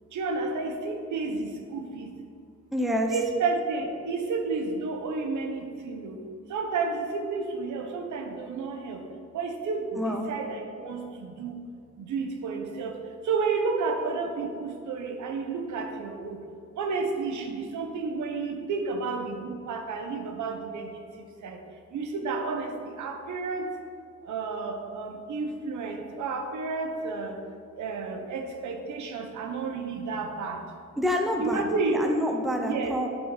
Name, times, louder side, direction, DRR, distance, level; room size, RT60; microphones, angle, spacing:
voice 1, 0.1-2.1 3.1-6.2 6.5-9.0 9.3-11.6 12.0-13.0 13.2-16.4 16.8-21.0 21.4-21.6 21.9-23.7 24.3-27.4 27.8-30.6 31.4-32.0 32.6-33.0, right 4 dB, 85° right, 4 dB, 1.2 m, -31 dB
voice 2, 2.7-3.2 9.9-10.3 31.0-31.6 31.9-33.1, equal, ahead, 2 dB, 0.7 m, -27 dB
10.5 x 8.3 x 4.2 m, 2.4 s
wide cardioid pair, 170°, 29 cm